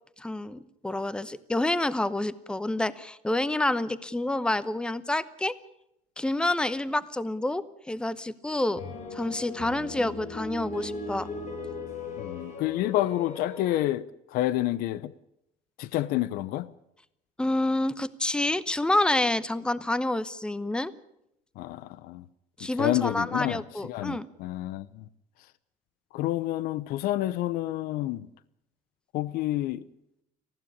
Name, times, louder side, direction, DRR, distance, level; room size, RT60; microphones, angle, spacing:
voice 1, 0.2-5.6 6.2-8.8 9.1-11.3 17.4-20.9 22.6-24.3, left 1 dB, 5° left, 0.9 m, -28 dB
sound 1, 8.8-13.8, left 3 dB, 50° left, 3.8 m, -38 dB
voice 2, 12.2-15.1 15.8-16.7 21.6-22.3 22.6-25.1 26.1-28.3 29.1-29.9, left 15 dB, 75° left, 0.8 m, -29 dB
19.5 x 15.0 x 10.0 m
cardioid pair, 110°, 16 cm